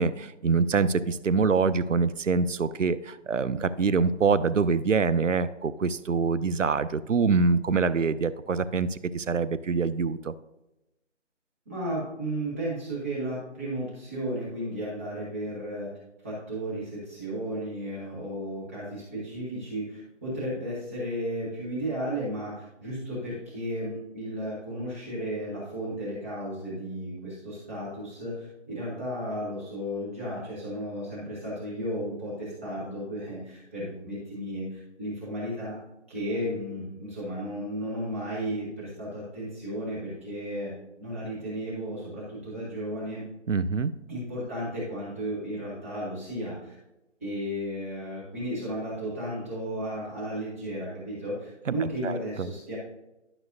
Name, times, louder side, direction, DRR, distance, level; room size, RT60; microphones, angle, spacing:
voice 1, 0.0-10.3 43.5-43.9 51.7-51.8 52.0-52.5, right 4 dB, 80° right, 14 dB, 0.7 m, -25 dB
voice 2, 11.7-15.9 16.2-35.8 36.1-40.7 41.0-43.2 44.1-46.8 47.2-52.8, equal, 10° right, -10 dB, 1.1 m, -34 dB
12.0 x 5.9 x 2.6 m, 0.95 s
figure-of-eight pair, 160°, 37 cm